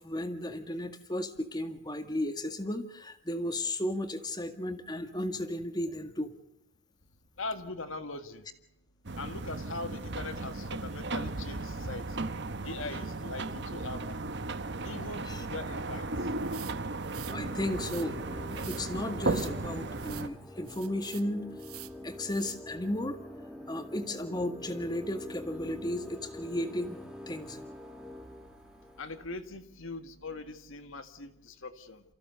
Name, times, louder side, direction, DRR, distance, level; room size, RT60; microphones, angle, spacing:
voice 1, 0.0-6.3 15.3-15.4 17.3-21.5 22.0-23.2 23.7-27.0 27.3-27.6, left 1 dB, 20° left, 8 dB, 1.9 m, -34 dB
voice 2, 7.4-8.5 9.2-12.2 12.6-14.2 14.8-16.3 29.0-32.0, left 3 dB, 65° left, 8 dB, 1.9 m, -41 dB
sound 1, 9.0-20.3, right 2 dB, 50° right, 1.1 m, -35 dB
sound 2, 16.4-17.4 17.7-18.1 18.5-18.9 19.2-19.5 19.9-20.3 20.7-21.3 21.6-22.0 22.3-22.6, right 14 dB, 90° right, 1.3 m, -47 dB
sound 3, 17.3-29.2, left 1 dB, 5° right, 2.3 m, -46 dB
29.0 x 15.5 x 6.7 m, 0.88 s
head